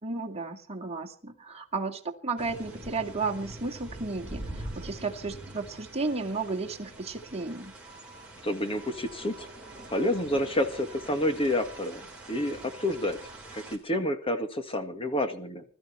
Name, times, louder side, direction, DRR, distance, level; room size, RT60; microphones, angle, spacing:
voice 1, 0.0-7.7, right 3 dB, 30° right, 3 dB, 2.3 m, -33 dB
sound 1, 2.4-13.8, right 1 dB, 5° right, 4.7 m, -44 dB
sound 2, 7.8-13.4, right 3 dB, 45° left, 7.6 m, -55 dB
voice 2, 8.4-9.5 9.9-13.2 13.5-15.6, left 1 dB, 25° left, 7 dB, 2.1 m, -29 dB
21.0 x 13.5 x 4.4 m, 0.39 s
head